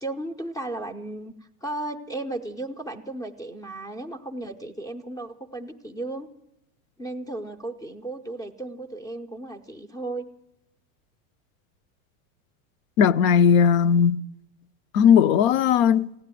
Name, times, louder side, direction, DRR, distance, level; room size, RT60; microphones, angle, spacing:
voice 1, 0.0-1.3 1.6-6.3 7.0-10.3, right 2 dB, 10° left, 0.5 m, -35 dB
voice 2, 13.0-14.2 14.9-16.1, left 7 dB, 65° left, 0.7 m, -18 dB
15.5 x 10.0 x 9.0 m
supercardioid pair, 145°, 43 cm